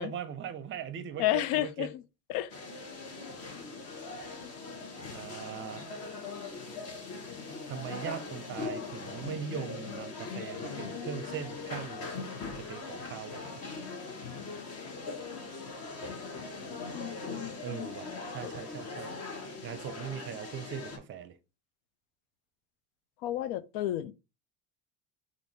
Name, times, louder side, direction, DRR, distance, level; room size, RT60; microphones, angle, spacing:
voice 1, 0.0-1.9 5.1-5.8 7.6-13.5 17.6-19.1 19.6-21.4, right 8 dB, 35° right, 0.5 m, -40 dB
voice 2, 1.2-1.9 2.3-2.5 16.9-18.5 23.2-24.1, left 14 dB, 80° left, 0.5 m, -32 dB
sound 1, 2.5-21.0, left 4 dB, 45° left, 1.2 m, -41 dB
3.4 x 2.6 x 4.0 m
cardioid pair, 140°, 36 cm